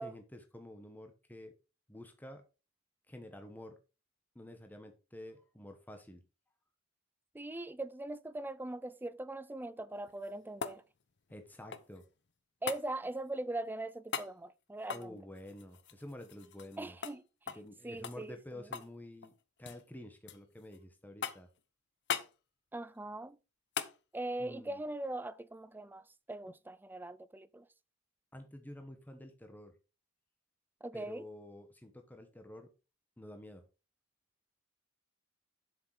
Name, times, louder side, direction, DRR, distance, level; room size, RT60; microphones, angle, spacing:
voice 1, 0.0-1.5 1.9-2.4 3.1-3.8 4.3-6.2 11.3-12.0 14.9-17.0 17.5-19.3 19.6-21.5 24.4-24.8 28.3-29.7 30.9-32.7 33.2-33.6, left 1 dB, 10° left, 1.1 m, -49 dB
voice 2, 7.3-10.8 12.6-15.2 16.8-17.6 17.8-18.6 22.7-23.4 24.1-26.0 26.3-27.7 30.8-31.2, right 2 dB, 10° right, 0.4 m, -41 dB
sound 1, 10.0-12.1 12.7-12.9 14.1-14.3 14.8-16.8 17.0-17.2 17.5-17.7 18.0-19.0 19.2-19.8 20.3-20.8 21.2-21.6 22.1-22.3 23.7-24.0 26.3-26.4, left 7 dB, 60° left, 0.9 m, -40 dB
7.8 x 6.6 x 4.8 m
head